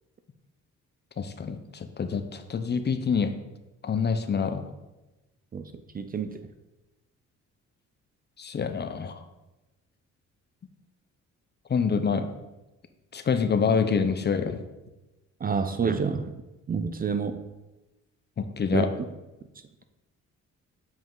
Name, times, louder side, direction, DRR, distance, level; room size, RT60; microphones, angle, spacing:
voice 1, 1.2-3.3 3.8-4.7 8.4-9.2 11.7-12.3 13.1-14.7 18.4-18.9, left 6 dB, 35° left, 8 dB, 0.7 m, -26 dB
voice 2, 5.5-6.5 15.4-16.3 16.7-17.4 18.7-18.9, right 5 dB, 30° right, 9 dB, 0.5 m, -28 dB
7.4 x 4.9 x 3.9 m, 1.0 s
cardioid pair, 90°, 30 cm